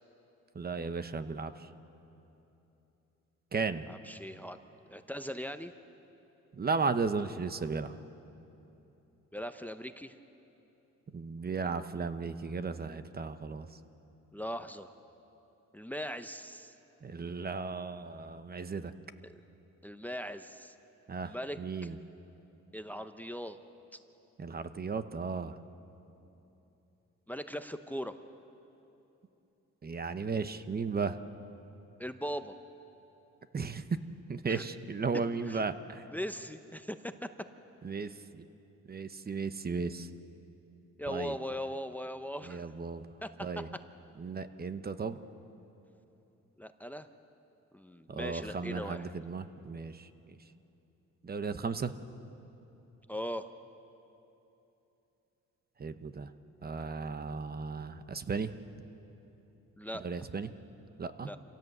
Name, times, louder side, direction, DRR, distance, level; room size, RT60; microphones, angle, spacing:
voice 1, 0.5-1.7 3.5-3.9 6.5-7.9 11.1-13.7 17.0-18.9 21.1-22.0 24.4-25.6 29.8-31.2 33.5-34.0 34.3-36.1 37.8-38.4 38.9-40.1 41.1-41.3 42.4-43.1 43.4-43.7 44.2-45.2 48.1-50.1 51.2-51.9 55.8-56.3 56.6-58.5 60.0-60.5 61.0-61.3, right 4 dB, 30° right, 10 dB, 0.9 m, -35 dB
voice 2, 3.8-4.6 4.9-5.7 9.3-10.2 14.3-14.9 15.7-16.7 19.2-19.3 19.8-20.7 21.2-21.6 22.7-23.6 23.9-24.0 27.3-28.2 32.0-32.5 34.5-34.6 35.5-35.6 36.1-37.3 41.0-42.7 43.2-43.7 46.6-47.1 47.7-49.1 53.1-53.5 59.8-60.0 61.2-61.4, equal, 5° left, 9 dB, 0.8 m, -39 dB
26.5 x 16.5 x 8.0 m, 3.0 s
cardioid pair, 90°, 30 cm